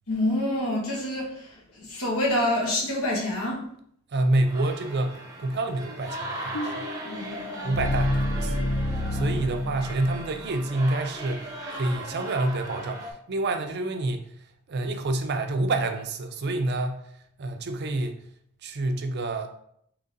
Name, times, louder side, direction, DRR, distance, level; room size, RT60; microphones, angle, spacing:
voice 1, 0.1-3.6 7.0-7.7, left 1 dB, 80° left, -2 dB, 1.4 m, -27 dB
voice 2, 4.1-6.9 7.6-14.3 14.7-17.0 17.4-18.2 18.6-19.5, right 2 dB, 50° right, 6 dB, 0.5 m, -28 dB
sound 1, 4.5-13.1, right 1 dB, 15° right, 0.7 m, -38 dB
sound 2, 6.5-10.6, left 1 dB, 60° left, 0.5 m, -28 dB
3.9 x 3.0 x 3.8 m, 0.69 s
head